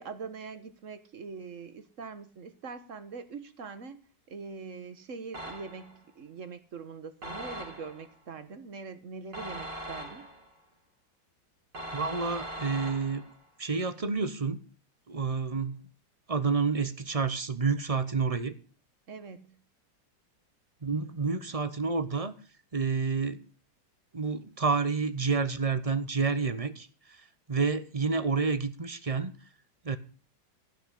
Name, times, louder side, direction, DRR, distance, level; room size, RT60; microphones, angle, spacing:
voice 1, 0.0-4.0 4.3-10.3 19.1-19.5, right 5 dB, 45° right, 1.6 m, -43 dB
sound 1, 5.3-6.0 7.2-8.1 9.3-10.5 11.7-13.4, right 1 dB, 75° right, 4.5 m, -40 dB
voice 2, 11.9-13.2 13.6-14.6 15.1-15.8 16.3-18.5 20.8-22.3 22.7-23.4 24.1-27.2 27.5-29.3 29.8-30.0, right 4 dB, 30° right, 0.7 m, -29 dB
16.0 x 6.0 x 8.4 m
omnidirectional pair, 2.0 m